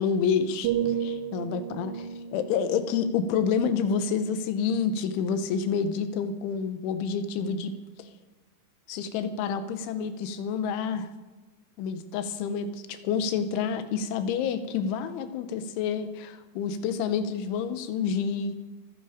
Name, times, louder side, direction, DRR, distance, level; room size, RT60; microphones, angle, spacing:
voice 1, 0.0-7.7 8.0-8.1 8.9-11.1 11.8-18.6, left 6 dB, 90° left, 10 dB, 3.5 m, -28 dB
sound 1, 0.6-4.5 5.0-5.3, right 9 dB, 90° right, 2.0 m, -34 dB
26.0 x 10.0 x 5.1 m, 1.2 s
omnidirectional pair, 5.3 m